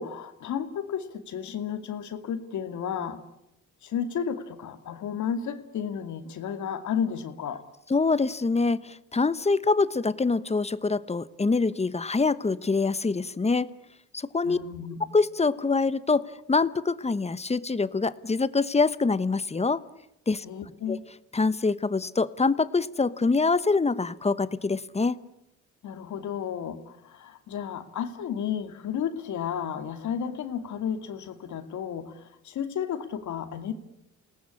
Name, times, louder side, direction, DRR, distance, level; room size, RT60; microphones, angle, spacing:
voice 1, 0.0-3.2 3.8-7.6 14.4-15.1 20.4-21.0 25.8-33.7, left 8 dB, 70° left, 9 dB, 2.5 m, -33 dB
voice 2, 7.9-13.7 14.1-14.6 15.1-19.8 20.3-20.4 20.9-21.0 21.3-25.2, left 4 dB, 20° left, 16 dB, 1.1 m, -25 dB
28.5 x 18.5 x 8.7 m, 0.86 s
cardioid pair, 90°, 30 cm